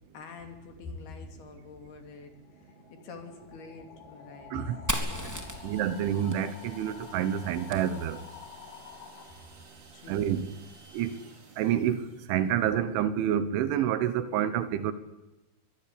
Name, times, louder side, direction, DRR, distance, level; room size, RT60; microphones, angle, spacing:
voice 1, 0.1-5.5 9.9-10.4, left 4 dB, 55° left, 4.4 m, -46 dB
sound 1, 2.0-9.8, left 8 dB, 85° left, 4.9 m, -49 dB
Fire, 4.9-8.6, equal, 5° right, 1.6 m, -37 dB
sound 2, 5.0-12.7, right 3 dB, 35° right, 3.9 m, -55 dB
voice 2, 5.6-8.2 10.1-10.5 10.9-11.1 11.6-12.0 12.3-14.9, right 10 dB, 75° right, 3.3 m, -28 dB
24.5 x 21.0 x 8.5 m
omnidirectional pair, 5.8 m